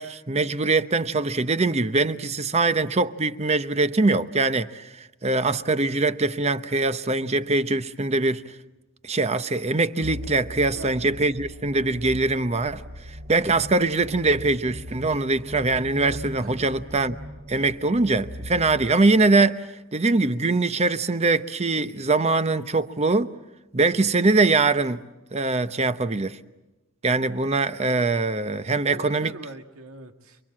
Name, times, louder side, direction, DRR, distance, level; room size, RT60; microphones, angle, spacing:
voice 1, 0.0-8.4 9.0-17.2 17.5-23.3 23.7-25.0 25.3-26.4 27.0-29.3, right 3 dB, 30° right, 0.8 m, -23 dB
sound 1, 10.0-19.0, equal, 55° right, 3.0 m, -39 dB
voice 2, 10.7-11.1 16.4-16.7 28.8-30.4, right 2 dB, 85° right, 2.2 m, -41 dB
29.0 x 23.5 x 7.5 m
head